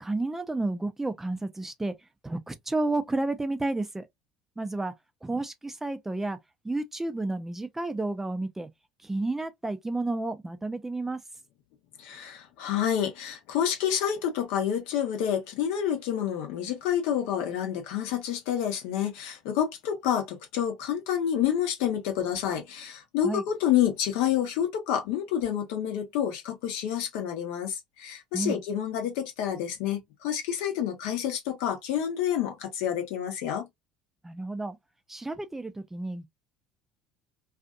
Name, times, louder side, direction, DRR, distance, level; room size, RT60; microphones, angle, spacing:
voice 1, 0.0-1.9 2.2-4.1 4.6-4.9 5.2-6.4 6.6-8.7 9.0-11.2 23.2-23.4 28.3-28.6 34.2-34.8 35.1-36.3, right 2 dB, 10° right, 0.4 m, -31 dB
voice 2, 12.0-33.7, left 9 dB, 65° left, 0.8 m, -28 dB
2.5 x 2.4 x 2.4 m
hypercardioid pair, 65°, 3 cm